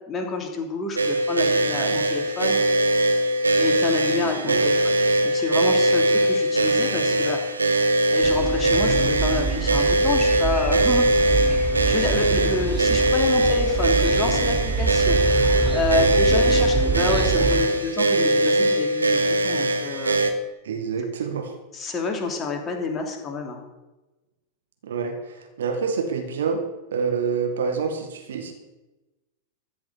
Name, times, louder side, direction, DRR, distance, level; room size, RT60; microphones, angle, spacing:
voice 1, 0.1-2.6 3.6-4.7 5.2-7.4 8.1-11.1 11.8-15.2 15.7-20.2 21.7-23.6, left 3 dB, 25° left, 2 dB, 3.1 m, -28 dB
sound 1, 1.0-20.3, right 1 dB, 80° right, 1.3 m, -21 dB
voice 2, 4.2-4.7 15.7-16.6 20.6-21.5 24.8-26.6 26.9-28.5, right 5 dB, 65° right, 5 dB, 1.8 m, -28 dB
sound 2, 8.2-17.6, right 6 dB, 5° right, 3.1 m, -27 dB
14.0 x 7.1 x 8.3 m, 1.1 s
figure-of-eight pair, 90°, 0 cm